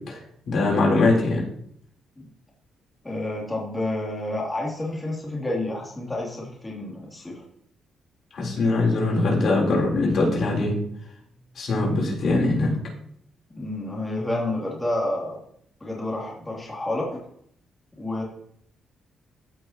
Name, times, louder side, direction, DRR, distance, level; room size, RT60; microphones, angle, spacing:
voice 1, 0.5-1.4 8.3-10.7 11.6-12.7, left 2 dB, 60° left, -3 dB, 3.9 m, -22 dB
voice 2, 3.0-7.4 13.6-15.4 15.8-17.2 18.0-18.2, left 1 dB, 15° left, -4 dB, 3.1 m, -29 dB
14.5 x 6.4 x 3.0 m, 0.68 s
cardioid pair, 85°, 0 cm